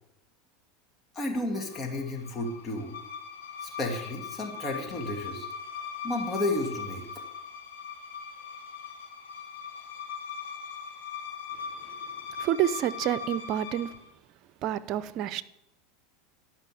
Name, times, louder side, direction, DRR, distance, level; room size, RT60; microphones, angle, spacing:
voice 1, 1.1-2.9 3.6-5.5 6.0-7.1, left 2 dB, 30° left, 2.5 m, -32 dB
sound 1, 1.3-14.0, left 6 dB, 85° left, 3.1 m, -40 dB
voice 2, 12.4-13.9 14.6-15.4, right 11 dB, 50° right, 0.6 m, -28 dB
12.5 x 5.7 x 7.7 m
hypercardioid pair, 95°, 0 cm